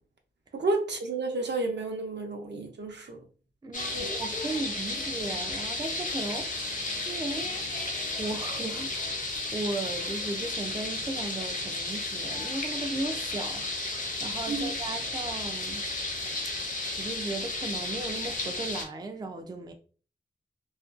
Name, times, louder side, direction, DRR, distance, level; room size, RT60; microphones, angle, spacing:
voice 1, 0.5-3.2 3.9-4.1 14.5-14.7, right 2 dB, 70° right, 0.6 m, -31 dB
voice 2, 3.6-7.6 8.2-15.9 16.8-19.7, right 2 dB, 20° right, 0.3 m, -36 dB
sound 1, 3.7-18.9, left 2 dB, 45° left, 0.7 m, -33 dB
2.5 x 2.2 x 2.4 m
wide cardioid pair, 60°, 19 cm